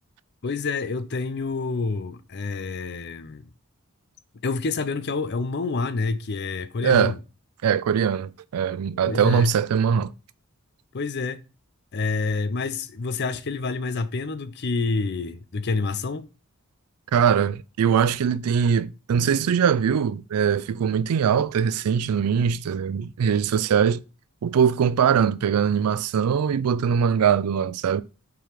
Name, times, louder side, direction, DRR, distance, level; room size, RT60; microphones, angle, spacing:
voice 1, 0.4-3.5 4.4-7.2 9.1-9.5 10.9-11.4 11.9-16.3, left 3 dB, 50° left, 0.5 m, -28 dB
voice 2, 6.8-7.1 7.6-10.1 17.1-24.0 24.4-28.0, right 7 dB, 90° right, 0.4 m, -22 dB
5.6 x 3.7 x 5.0 m
head